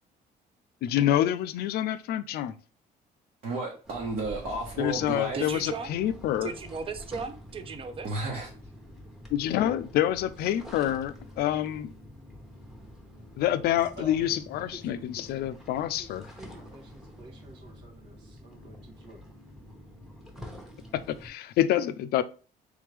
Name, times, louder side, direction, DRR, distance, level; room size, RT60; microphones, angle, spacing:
voice 1, 0.8-2.5 4.8-6.5 9.3-11.9 13.4-16.3 21.1-22.2, left 12 dB, 70° left, 0.4 m, -27 dB
voice 2, 3.4-5.5 8.0-8.5, right 2 dB, 55° right, 1.3 m, -33 dB
sound 1, 3.8-21.3, left 1 dB, ahead, 0.9 m, -47 dB
voice 3, 5.3-5.9 6.4-8.1, right 5 dB, 35° right, 0.6 m, -36 dB
voice 4, 14.0-14.3 14.7-15.4 16.0-19.2, right 1 dB, 90° right, 1.5 m, -49 dB
3.6 x 3.3 x 3.2 m
cardioid pair, 110°, 17 cm